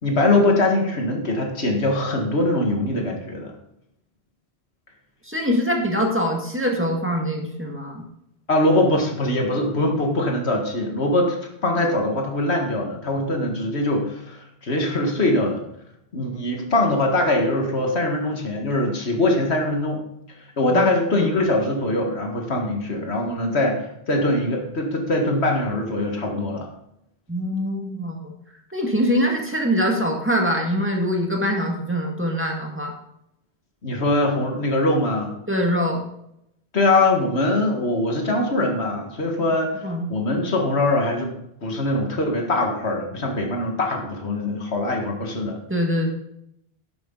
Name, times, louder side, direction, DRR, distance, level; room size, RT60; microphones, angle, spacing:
voice 1, 0.0-3.5 8.5-11.4 11.6-15.6 16.1-20.0 20.6-26.7 33.8-35.3 36.7-41.3 41.6-45.6, left 2 dB, 80° left, 2 dB, 2.0 m, -22 dB
voice 2, 5.2-8.0 20.7-20.9 21.2-21.3 27.3-28.3 28.7-32.9 35.5-36.0 39.8-40.1 45.7-46.1, equal, 10° right, 0 dB, 1.9 m, -23 dB
11.0 x 9.5 x 3.9 m, 0.78 s
omnidirectional pair, 1.1 m